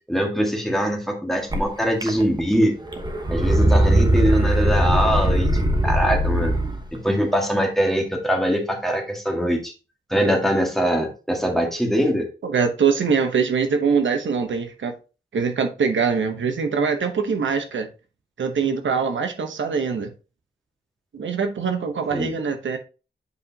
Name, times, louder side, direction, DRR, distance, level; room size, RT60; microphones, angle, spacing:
voice 1, 0.1-2.8 3.3-5.5 5.8-6.6 6.9-9.7 10.1-12.3 22.1-22.3, equal, ahead, 1.7 m, -22 dB
sound 1, 1.5-1.6 2.0-2.6 2.9-6.8, right 1 dB, 20° right, 1.1 m, -20 dB
voice 2, 12.4-14.9 15.3-17.9 18.4-20.1 21.1-22.8, right 5 dB, 85° right, 1.0 m, -23 dB
8.1 x 4.9 x 2.8 m
wide cardioid pair, 120°, 19 cm